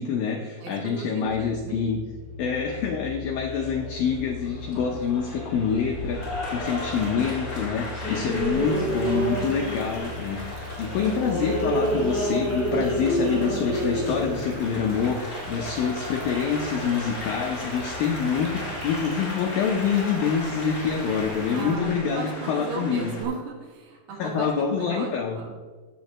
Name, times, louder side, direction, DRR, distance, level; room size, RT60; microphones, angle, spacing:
voice 1, 0.0-2.0 2.4-10.4 10.8-23.2 24.2-25.4, left 6 dB, 90° left, 2 dB, 2.0 m, -26 dB
voice 2, 0.6-1.8 8.2-8.4 10.8-11.2 21.5-25.5, right 4 dB, 70° right, 1 dB, 3.5 m, -36 dB
sound 1, 1.2-18.9, left 4 dB, 85° right, 5.6 m, -41 dB
Applause, 3.5-23.2, equal, 25° left, 3.2 m, -31 dB
sound 2, 8.5-21.7, right 2 dB, 55° right, 3.8 m, -46 dB
15.0 x 9.1 x 3.0 m, 1.4 s
omnidirectional pair, 5.3 m